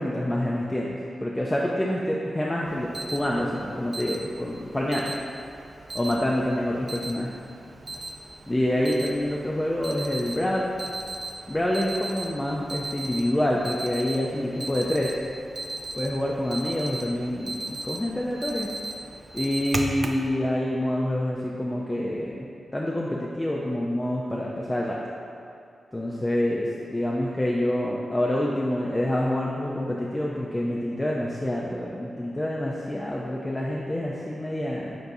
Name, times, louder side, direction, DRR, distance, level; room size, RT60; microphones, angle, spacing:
voice 1, 0.0-5.1 5.9-7.3 8.5-10.7 11.5-15.1 15.9-18.7 19.3-22.5 22.7-25.0 25.9-35.0, left 1 dB, 15° left, -4 dB, 0.5 m, -27 dB
Alarm, 2.7-20.3, right 2 dB, 40° right, 0.5 m, -37 dB
7.8 x 4.5 x 2.7 m, 2.5 s
cardioid pair, 80°, 0 cm